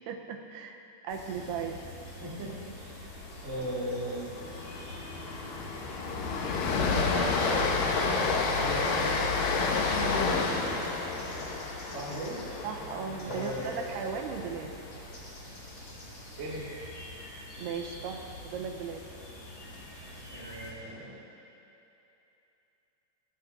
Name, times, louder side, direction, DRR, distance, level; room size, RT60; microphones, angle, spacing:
voice 1, 0.1-0.8 1.0-1.8 10.0-10.4 12.6-14.7 17.6-19.0, right 6 dB, 80° right, 4 dB, 2.7 m, -37 dB
sound 1, 1.1-20.7, left 1 dB, 30° left, 2.0 m, -45 dB
voice 2, 2.2-2.5 2.8-3.0 3.3-4.3 6.9-9.3 10.3-10.7 11.9-12.4 13.2-14.0 16.3-16.7 20.3-21.2, right 1 dB, 30° right, -6 dB, 1.3 m, -37 dB
Train, 3.2-3.5 3.8-3.9 4.3-14.4, left 4 dB, 70° left, 2.2 m, -30 dB
sound 2, 4.3-10.6, left 2 dB, 50° left, 2.7 m, -46 dB
25.5 x 10.5 x 2.6 m, 2.9 s
omnidirectional pair, 4.9 m